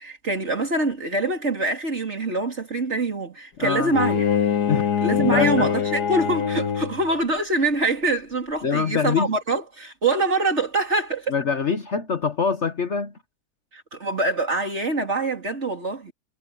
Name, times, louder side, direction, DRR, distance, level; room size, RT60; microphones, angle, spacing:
voice 1, 0.0-4.2 5.0-11.3 13.7-16.1, right 2 dB, 45° right, 3.7 m, -24 dB
voice 2, 3.6-3.9 4.7-5.7 8.6-9.3 11.3-13.1, left 6 dB, 50° left, 1.3 m, -24 dB
Bowed string instrument, 3.9-7.1, left 7 dB, 75° left, 1.9 m, -23 dB
omnidirectional pair, 1.7 m